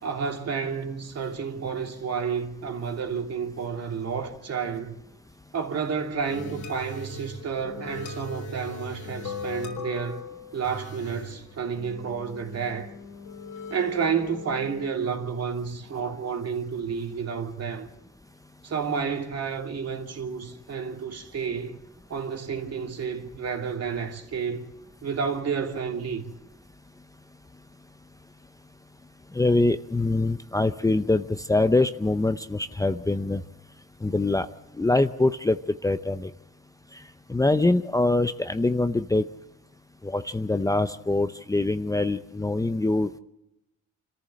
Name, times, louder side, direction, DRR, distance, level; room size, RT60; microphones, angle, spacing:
voice 1, 0.0-5.0 5.5-10.2 10.5-12.9 13.7-17.9 18.6-21.8 22.1-24.6 25.0-26.2, right 6 dB, 55° right, 2.9 m, -30 dB
sound 1, 6.2-14.9, left 3 dB, 90° left, 4.2 m, -39 dB
voice 2, 29.3-33.4 34.0-34.5 34.7-36.3 36.9-37.0 37.3-39.2 40.0-43.2, left 2 dB, 10° left, 0.7 m, -24 dB
26.0 x 14.5 x 7.6 m
cardioid pair, 90°, 30 cm